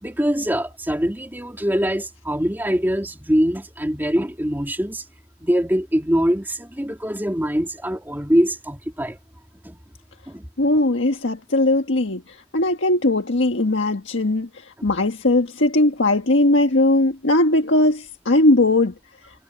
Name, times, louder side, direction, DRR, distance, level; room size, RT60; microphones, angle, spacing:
voice 1, 0.0-5.0 5.4-9.2 9.6-9.8 10.3-10.5 14.8-14.9, equal, 10° right, 2.6 m, -23 dB
voice 2, 10.6-14.5 14.8-18.9, left 2 dB, 85° left, 1.5 m, -19 dB
head